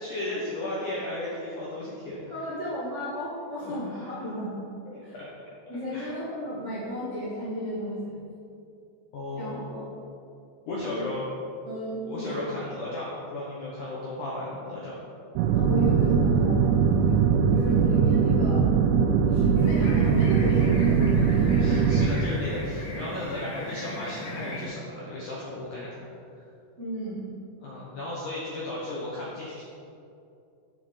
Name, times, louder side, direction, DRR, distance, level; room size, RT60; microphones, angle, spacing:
voice 1, 0.0-2.3 3.6-4.3 4.9-5.3 5.9-6.2 9.1-9.6 10.7-11.2 12.0-15.0 21.6-26.0 26.3-26.4 27.6-29.6, left 2 dB, 75° left, -6 dB, 1.8 m, -35 dB
voice 2, 2.3-4.5 5.0-5.1 5.7-8.2 9.3-9.9 10.8-11.0 11.6-12.3 15.5-18.7 19.3-21.8 26.8-27.3, equal, 55° right, -11 dB, 0.8 m, -34 dB
sound 1, 15.4-22.1, right 6 dB, 90° right, 3.1 m, -21 dB
sound 2, 19.6-24.7, left 1 dB, 55° left, 2.9 m, -37 dB
7.8 x 7.6 x 5.1 m, 2.6 s
omnidirectional pair, 5.4 m